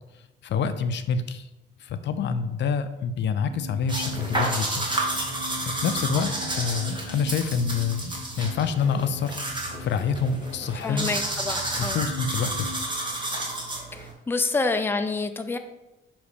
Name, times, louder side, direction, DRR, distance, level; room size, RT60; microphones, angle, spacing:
voice 1, 0.4-1.5 1.8-4.9 5.3-9.3 9.8-11.2 11.8-12.7, left 6 dB, 65° left, 10 dB, 0.5 m, -27 dB
sound 1, 3.4-12.8, left 1 dB, 85° right, 1.2 m, -40 dB
sound 2, 3.9-14.1, right 2 dB, 25° right, 1.7 m, -31 dB
voice 2, 10.8-12.0 13.9-15.6, left 3 dB, 10° left, 7 dB, 0.5 m, -28 dB
6.5 x 3.1 x 4.9 m, 1.0 s
cardioid pair, 90°, 20 cm